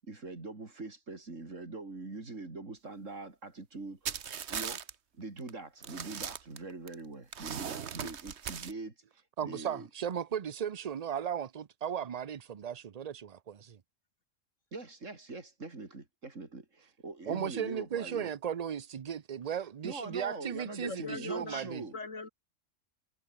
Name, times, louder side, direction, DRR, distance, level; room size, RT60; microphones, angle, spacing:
voice 1, 0.0-4.2 4.5-4.9 5.1-8.9 9.4-9.9 14.7-18.3 19.8-21.9, right 3 dB, 85° right, 4.0 m, -43 dB
sound 1, 4.1-4.9 5.4-5.5 5.8-6.9 7.3-8.7, right 7 dB, 65° right, 1.3 m, -38 dB
voice 2, 9.4-13.8 17.3-21.8, right 8 dB, 40° right, 0.6 m, -36 dB
voice 3, 20.8-21.6 21.9-22.3, left 3 dB, 80° left, 3.2 m, -40 dB
omnidirectional pair, 1.3 m